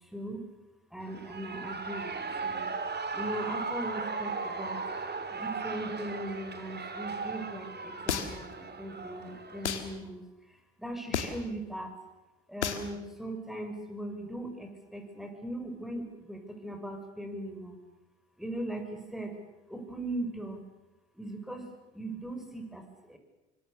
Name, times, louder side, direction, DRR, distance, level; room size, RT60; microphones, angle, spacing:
voice 1, 0.1-0.4 0.9-2.7 3.1-4.8 5.3-10.2 10.8-12.0 12.5-17.8 18.4-19.4 19.7-20.6 21.1-21.7 21.9-23.2, right 1 dB, ahead, 5 dB, 6.0 m, -39 dB
Shout / Cheering, 1.0-9.9, right 4 dB, 30° right, 3.1 m, -37 dB
sound 1, 8.1-8.5 9.6-9.9 11.1-11.5 12.6-12.9, left 8 dB, 90° left, 1.6 m, -31 dB
25.0 x 23.5 x 6.8 m, 1.0 s
hypercardioid pair, 55°, 34 cm